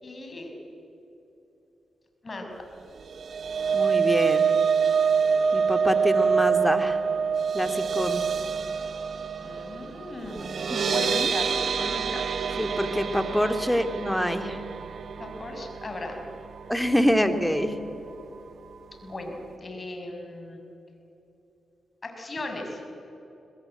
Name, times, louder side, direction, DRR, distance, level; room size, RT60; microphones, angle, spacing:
voice 1, 0.0-0.5 2.2-2.5 9.4-10.4 10.9-12.3 15.2-16.2 19.0-20.6 22.0-22.8, left 2 dB, 40° left, 3 dB, 6.0 m, -37 dB
sound 1, 3.0-17.2 17.6-17.8 18.1-18.2, right 6 dB, 65° right, 1.1 m, -26 dB
voice 2, 3.7-4.5 5.5-7.0 7.5-8.2 10.4-11.3 12.6-14.6 16.7-17.8, equal, 5° left, 7 dB, 2.4 m, -26 dB
23.0 x 20.5 x 9.0 m, 3.0 s
cardioid pair, 60°, 0 cm